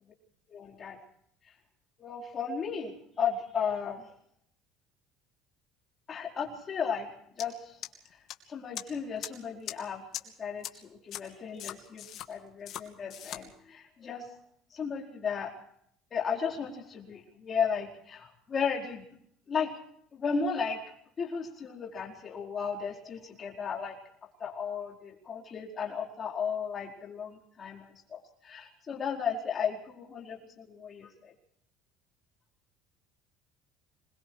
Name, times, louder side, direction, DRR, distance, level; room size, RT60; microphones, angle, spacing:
voice 1, 0.5-1.0 2.0-4.0 6.1-7.1 7.4-7.8 8.5-10.0 10.4-14.3 14.7-15.5 16.1-19.0 19.5-19.7 20.1-20.8 21.2-24.0 24.4-31.3, left 6 dB, 25° left, 0 dB, 4.5 m, -34 dB
sound 1, 7.4-7.5 7.8-8.3 8.8-8.9 9.2-9.3 9.7-9.8 10.1-10.2 10.6-10.7 11.1-11.2 11.6-12.3 12.7-12.8 13.1-13.4, left 12 dB, 40° left, 2.8 m, -38 dB
26.5 x 22.5 x 4.8 m, 0.67 s
cardioid pair, 175°, 0 cm